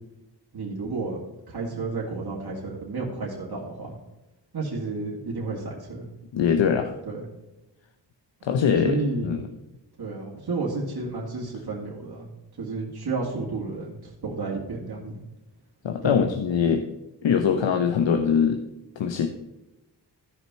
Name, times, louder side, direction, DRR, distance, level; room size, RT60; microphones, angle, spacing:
voice 1, 0.5-1.2 1.5-4.0 4.5-6.1 7.1-7.3 8.8-9.3 10.0-12.3 12.6-15.2 16.0-16.2, right 3 dB, 60° right, -4 dB, 2.2 m, -31 dB
voice 2, 6.3-6.9 8.4-9.0 9.2-9.5 15.8-16.8 17.2-18.6 19.0-19.3, left 7 dB, 85° left, 5 dB, 0.8 m, -22 dB
13.5 x 5.9 x 4.3 m, 1.0 s
cardioid pair, 75°, 43 cm